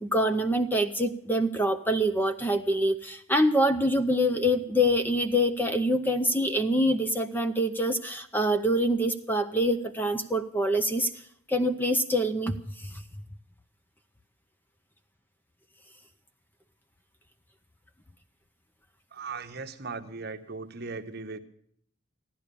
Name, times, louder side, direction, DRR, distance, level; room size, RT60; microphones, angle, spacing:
voice 1, 0.0-11.2 11.5-13.0, equal, 10° left, 8 dB, 0.6 m, -25 dB
voice 2, 19.1-21.4, right 4 dB, 50° right, 6 dB, 1.1 m, -38 dB
15.0 x 11.5 x 6.8 m, 0.66 s
head